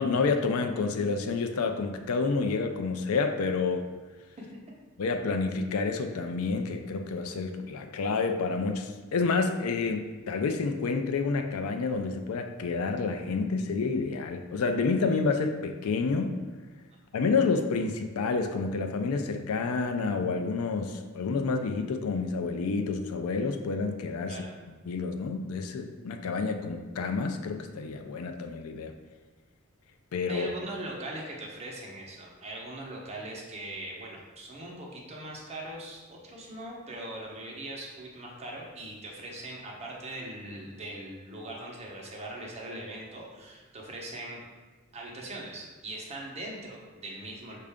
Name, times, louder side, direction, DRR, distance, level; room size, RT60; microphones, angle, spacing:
voice 1, 0.0-3.8 5.0-16.3 17.1-24.4 24.9-28.9 30.1-30.5, left 4 dB, 85° left, 6 dB, 0.4 m, -29 dB
voice 2, 30.3-44.4 44.9-47.6, right 1 dB, 30° right, -3 dB, 0.8 m, -40 dB
5.5 x 2.5 x 3.4 m, 1.3 s
head